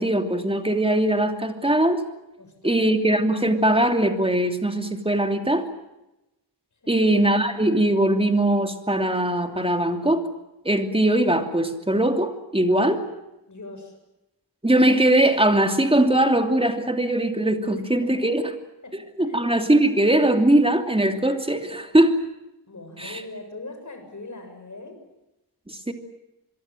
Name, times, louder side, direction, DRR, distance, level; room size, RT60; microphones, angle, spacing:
voice 1, 0.0-2.0 2.6-5.6 6.9-10.2 10.6-13.0 14.6-18.4 19.2-22.2 23.0-23.2 25.7-25.9, right 1 dB, 10° right, 6 dB, 2.8 m, -21 dB
voice 2, 2.4-2.9 6.8-7.1 12.7-13.1 13.5-14.0 17.8-18.1 18.8-19.0 19.2-19.7 22.7-25.0, left 2 dB, 40° left, 6 dB, 7.0 m, -41 dB
26.5 x 22.5 x 7.7 m, 0.93 s
wide cardioid pair, 110°, 43 cm